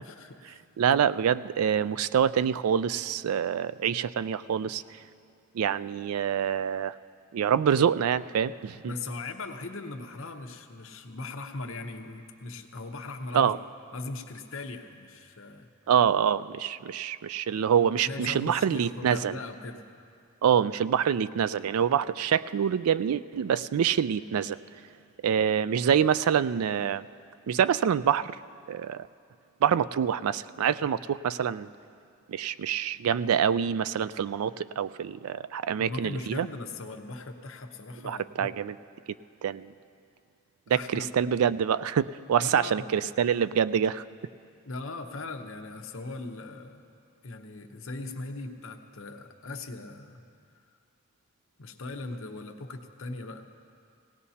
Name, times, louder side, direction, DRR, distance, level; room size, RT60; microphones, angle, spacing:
voice 1, 0.1-0.6 8.8-13.5 13.9-15.7 18.0-19.8 35.8-38.5 40.7-41.1 42.4-42.9 44.6-46.8 47.2-50.2 51.6-53.4, left 3 dB, 65° left, 5 dB, 0.9 m, -39 dB
voice 2, 0.8-4.8 5.5-6.9 7.3-8.9 13.3-13.6 15.9-19.4 20.4-24.6 25.2-27.1 27.5-28.4 28.7-29.1 29.6-31.7 32.3-36.5 38.0-38.7 39.4-39.7 40.7-44.0, right 8 dB, 85° right, 16 dB, 0.3 m, -26 dB
18.0 x 18.0 x 2.8 m, 2.4 s
head